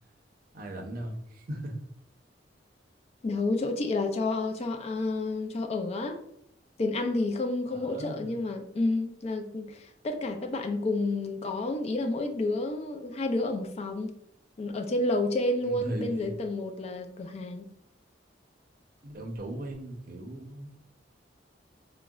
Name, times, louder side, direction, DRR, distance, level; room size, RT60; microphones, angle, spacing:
voice 1, 0.5-1.8 7.7-8.3 15.6-16.3 19.0-20.7, right 1 dB, 50° right, 2 dB, 0.6 m, -38 dB
voice 2, 3.2-6.2 6.8-14.1 14.6-17.7, left 2 dB, 35° left, 5 dB, 0.3 m, -30 dB
3.7 x 2.0 x 2.3 m, 0.77 s
head